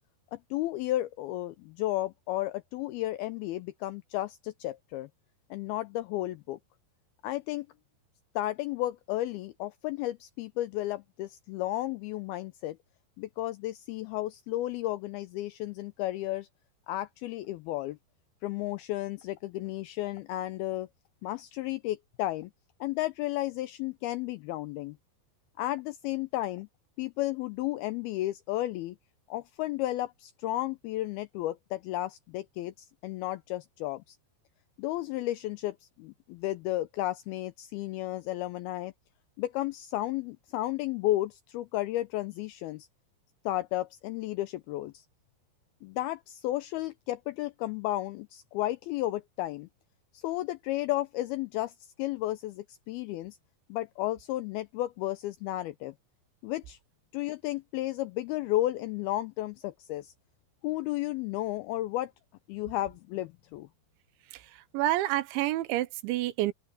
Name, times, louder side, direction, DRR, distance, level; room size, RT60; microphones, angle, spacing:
voice 1, 0.3-5.1 5.5-6.6 7.2-7.7 8.4-12.8 13.2-16.5 16.9-18.0 18.4-20.9 21.2-22.5 22.8-25.0 25.6-26.7 27.0-29.0 29.3-34.2 34.8-38.9 39.4-42.9 43.5-45.0 45.8-49.7 50.1-51.7 52.0-53.4 53.7-55.9 56.4-56.8 57.1-60.1 60.6-62.1 62.5-63.7, left 15 dB, 90° left, 2.2 m, -33 dB
voice 2, 64.3-66.5, right 15 dB, 90° right, 3.3 m, -29 dB
omnidirectional pair, 5.2 m